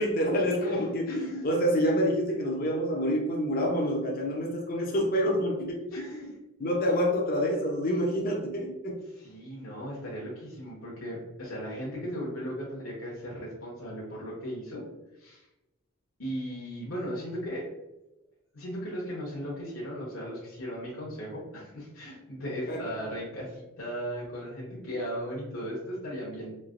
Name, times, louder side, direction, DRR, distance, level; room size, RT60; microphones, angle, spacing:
voice 1, 0.0-6.2 6.6-9.0 22.4-22.8, equal, 40° left, -1 dB, 0.5 m, -27 dB
voice 2, 1.1-1.4 5.9-6.4 9.2-14.8 15.2-15.5 16.2-17.7 18.5-26.5, equal, 70° left, -5 dB, 0.9 m, -37 dB
3.2 x 2.9 x 2.4 m, 0.98 s
head